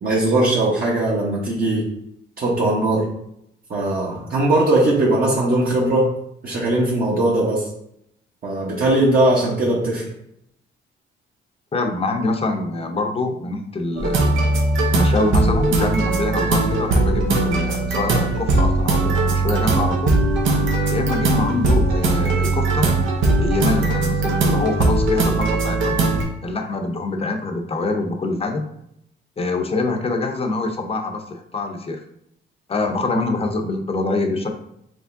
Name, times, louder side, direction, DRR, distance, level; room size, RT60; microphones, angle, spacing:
voice 1, 0.0-1.8 2.4-3.1 3.7-6.1 6.4-7.7 8.4-10.1, right 1 dB, 50° right, -6 dB, 1.1 m, -19 dB
voice 2, 11.7-14.4 14.9-20.2 20.9-22.9 23.4-26.0 26.4-28.6 29.4-32.0 32.7-34.5, left 2 dB, 30° left, 4 dB, 0.7 m, -25 dB
sound 1, 14.0-26.2, right 2 dB, 80° right, 0.9 m, -19 dB
5.1 x 2.9 x 2.6 m, 0.76 s
cardioid pair, 90°, 20 cm